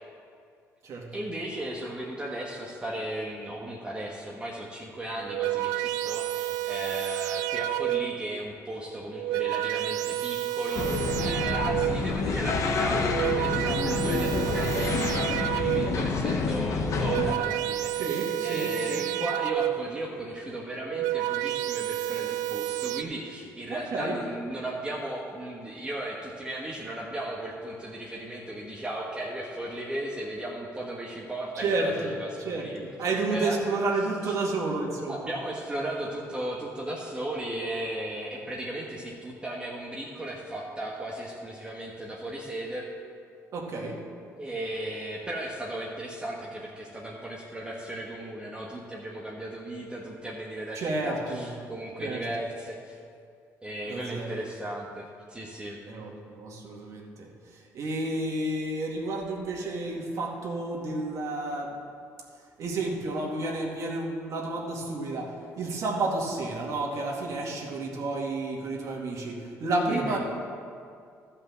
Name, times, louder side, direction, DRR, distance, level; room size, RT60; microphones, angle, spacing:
voice 1, 1.1-32.8 33.3-33.6 34.2-34.4 35.1-42.9 44.4-53.0 53.6-55.8 69.9-70.2, right 1 dB, 15° right, -4 dB, 1.4 m, -36 dB
sound 1, 5.2-8.3 9.0-12.2 12.9-16.1 16.8-20.0 20.7-23.0, right 15 dB, 90° right, 0.3 m, -30 dB
sound 2, 10.7-17.4, left 4 dB, 55° left, 1.1 m, -28 dB
voice 2, 18.0-19.1 23.7-24.2 31.6-35.3 43.5-44.0 50.7-51.5 52.0-52.2 53.9-54.3 55.9-61.8 62.6-70.2, right 2 dB, 60° right, -2 dB, 2.1 m, -31 dB
12.5 x 5.6 x 7.4 m, 2.3 s
cardioid pair, 95°, 6 cm